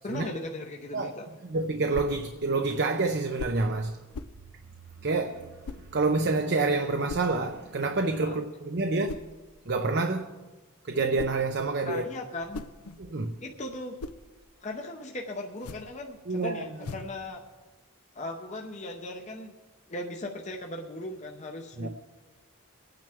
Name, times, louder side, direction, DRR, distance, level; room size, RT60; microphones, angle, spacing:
voice 1, 0.0-1.3 8.2-8.4 11.8-12.6 13.4-14.0 14.6-17.4 18.1-19.5 19.9-21.9, left 1 dB, 30° left, 0.7 m, -38 dB
voice 2, 1.5-4.0 5.0-9.2 9.7-10.3 10.9-12.0 13.0-13.4 16.3-16.6 21.8-21.9, right 3 dB, 50° right, 0.6 m, -28 dB
sound 1, 1.9-2.3 3.4-3.7 4.1-4.4 5.6-5.9 7.1-7.4 9.1-9.4 10.9-11.5 12.3-13.2 13.7-14.3 15.5-16.0 16.8-17.2, left 3 dB, 85° left, 0.6 m, -40 dB
23.5 x 9.2 x 3.5 m
head